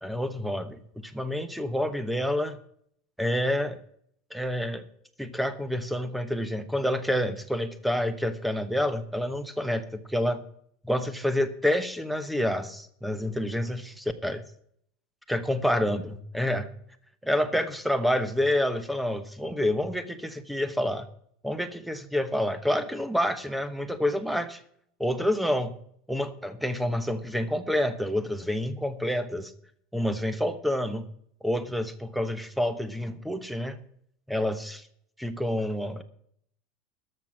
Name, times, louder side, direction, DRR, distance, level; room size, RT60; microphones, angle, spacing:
voice 1, 0.0-2.6 3.2-3.8 4.3-4.8 5.2-10.4 10.8-14.4 15.3-16.7 17.2-21.1 21.4-24.6 25.0-25.7 26.1-29.5 29.9-31.1 31.4-33.8 34.3-34.8 35.2-36.0, left 1 dB, ahead, 12 dB, 0.9 m, -28 dB
13.5 x 6.0 x 9.0 m, 0.66 s
supercardioid pair, 160°, 0 cm